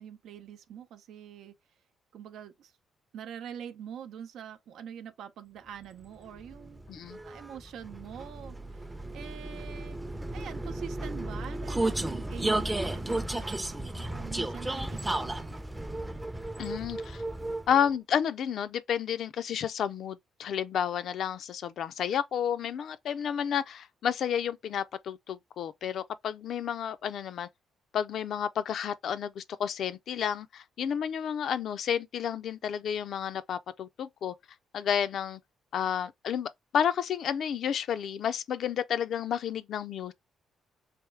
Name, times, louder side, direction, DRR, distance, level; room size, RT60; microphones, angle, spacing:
voice 1, 0.0-1.5 2.1-2.7 3.1-6.8 7.2-10.0 10.3-15.6, right 8 dB, 80° right, 0.6 m, -45 dB
Vehicle, 6.0-17.9, right 2 dB, 15° right, 0.5 m, -34 dB
voice 2, 6.9-7.2 16.6-17.2 17.7-27.5 27.9-34.3 34.7-35.4 35.7-40.1, left 8 dB, 65° left, 0.4 m, -31 dB
3.4 x 3.1 x 3.1 m
cardioid pair, 90°, 0 cm